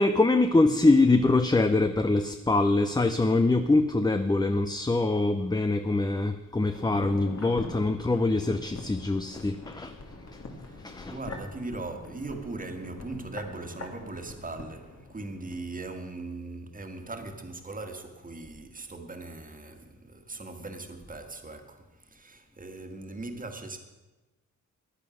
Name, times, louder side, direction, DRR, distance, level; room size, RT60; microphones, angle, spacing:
voice 1, 0.0-10.0 10.3-10.4 10.8-11.2, left 2 dB, 15° left, 0.5 m, -24 dB
sound 1, 6.6-15.6 15.9-16.0, left 3 dB, 55° left, 2.3 m, -43 dB
voice 2, 10.6-23.8, right 2 dB, 25° right, 1.7 m, -39 dB
15.0 x 10.5 x 6.3 m
wide cardioid pair, 115°, 31 cm